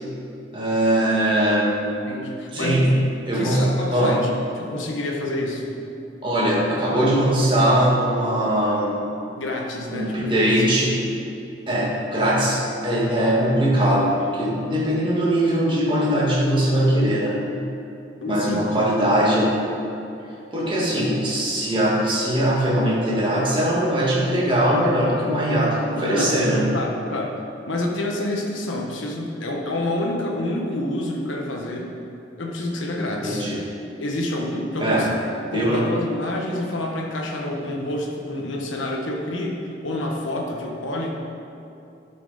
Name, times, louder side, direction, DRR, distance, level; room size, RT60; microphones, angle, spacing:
voice 1, 0.5-1.8 2.5-2.9 3.3-4.2 6.2-9.1 9.9-11.0 11.7-17.4 18.2-19.5 20.5-26.7 33.2-33.6 34.8-35.1 35.5-35.9, right 1 dB, 25° right, -5 dB, 1.7 m, -21 dB
voice 2, 2.0-3.0 3.3-4.3 4.6-5.8 9.4-10.5 18.2-18.6 20.8-20.9 25.9-26.5 26.7-31.9 32.4-33.5 34.0-35.1 35.5-41.2, left 1 dB, 85° left, 0 dB, 1.2 m, -28 dB
11.0 x 5.8 x 4.0 m, 2.7 s
head